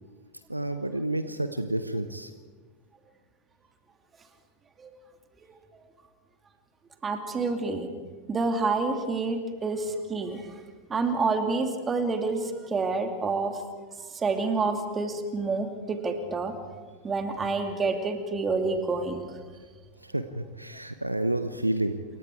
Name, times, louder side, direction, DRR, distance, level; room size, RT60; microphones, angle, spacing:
voice 1, 0.5-2.3 20.0-22.0, right 1 dB, 85° right, 10 dB, 0.9 m, -30 dB
voice 2, 7.0-7.9 8.3-10.5 10.9-13.6 14.0-16.6 17.0-19.3, right 3 dB, 20° right, 6 dB, 2.6 m, -28 dB
28.0 x 23.0 x 4.8 m, 1.5 s
figure-of-eight pair, 90°, 0 cm